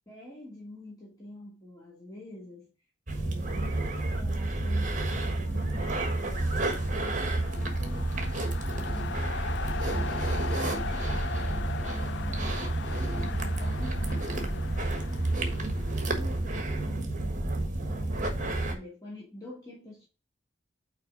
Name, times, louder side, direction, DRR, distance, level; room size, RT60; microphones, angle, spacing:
voice 1, 0.1-2.7 3.2-6.7 7.0-9.3 9.7-10.3 10.6-12.7 13.1-20.1, left 1 dB, 20° left, 2.3 m, -46 dB
sound 1, 3.1-18.8, right 2 dB, 45° right, 1.4 m, -30 dB
sound 2, 4.8-16.7, left 6 dB, 65° left, 0.5 m, -41 dB
5.9 x 4.6 x 5.2 m
head